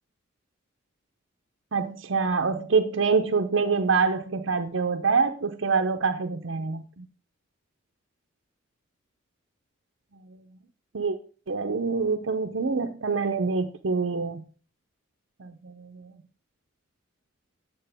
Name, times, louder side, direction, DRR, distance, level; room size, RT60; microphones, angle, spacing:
voice 1, 1.7-7.1 10.9-11.2 11.5-14.4 15.4-16.1, right 4 dB, 75° right, 0.7 m, -26 dB
9.0 x 7.4 x 3.4 m
head